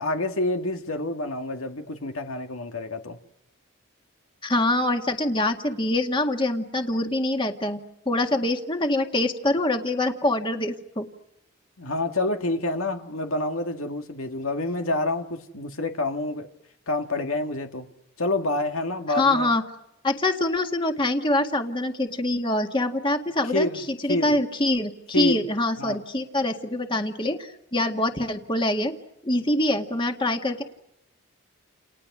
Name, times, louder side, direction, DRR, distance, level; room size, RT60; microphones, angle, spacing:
voice 1, 0.0-3.2 11.8-16.5 16.9-17.9 18.2-19.5 23.4-24.3 25.1-25.4 25.8-26.0, left 2 dB, 85° left, 2.2 m, -28 dB
voice 2, 4.4-7.8 8.1-11.1 19.1-19.6 20.0-28.9 29.2-30.6, left 1 dB, 25° left, 1.9 m, -25 dB
30.0 x 29.5 x 6.2 m
head